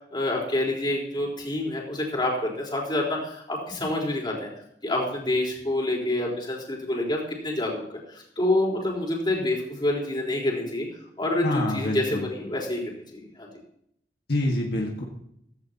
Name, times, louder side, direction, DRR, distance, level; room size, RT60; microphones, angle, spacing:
voice 1, 0.0-4.5 4.8-10.9 11.2-12.8 13.1-13.5, left 1 dB, 25° left, -3 dB, 4.1 m, -27 dB
voice 2, 11.4-12.3 14.3-15.0, left 1 dB, 65° left, -1 dB, 1.7 m, -26 dB
16.0 x 15.0 x 2.9 m, 0.73 s
head